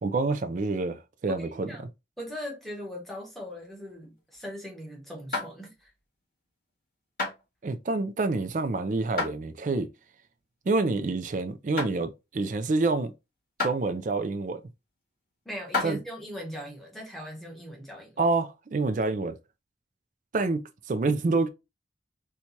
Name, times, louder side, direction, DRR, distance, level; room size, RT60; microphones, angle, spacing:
voice 1, 0.0-1.7 7.6-9.9 10.7-13.1 13.6-14.6 15.8-16.0 18.2-19.4 20.3-21.5, right 3 dB, 45° right, 0.4 m, -27 dB
voice 2, 1.3-1.8 2.2-5.9 15.4-18.3, equal, ahead, 1.0 m, -40 dB
sound 1, 3.0-4.7 5.3-5.9 6.4-6.7 7.2-7.4 8.1-8.6 9.2-9.4 9.9-10.0 10.6-10.8 11.2-11.4 11.8-12.0 12.7-12.8 13.6-13.8 14.6-14.7 15.5-16.0, left 3 dB, 50° left, 2.2 m, -32 dB
4.4 x 2.3 x 2.7 m
head